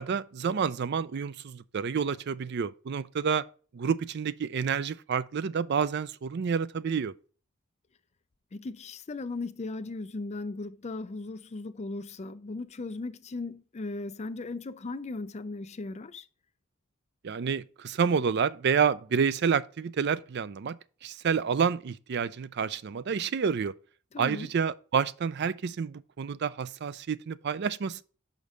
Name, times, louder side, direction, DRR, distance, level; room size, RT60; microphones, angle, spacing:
voice 1, 0.0-3.4 3.7-7.1 17.2-20.8 21.0-23.7 24.2-28.0, right 6 dB, 55° right, 0.4 m, -29 dB
voice 2, 8.5-16.3 24.1-24.5, left 3 dB, 30° left, 0.4 m, -37 dB
5.4 x 5.1 x 6.2 m
head